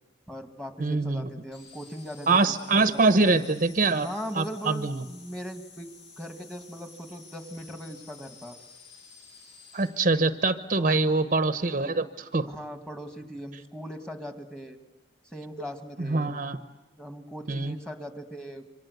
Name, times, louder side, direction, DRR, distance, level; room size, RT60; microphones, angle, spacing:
voice 1, 0.3-3.5 4.0-5.9 6.2-8.6 10.7-11.2 12.5-14.8 15.3-16.3 17.0-18.9, equal, 5° left, 7 dB, 2.0 m, -39 dB
voice 2, 0.8-1.3 2.3-4.1 4.4-5.0 9.7-12.5 16.0-16.6 17.5-17.7, right 3 dB, 45° right, 11 dB, 0.9 m, -24 dB
sound 1, 1.5-9.9, left 5 dB, 65° left, 7.6 m, -51 dB
27.0 x 24.5 x 8.1 m, 1.0 s
head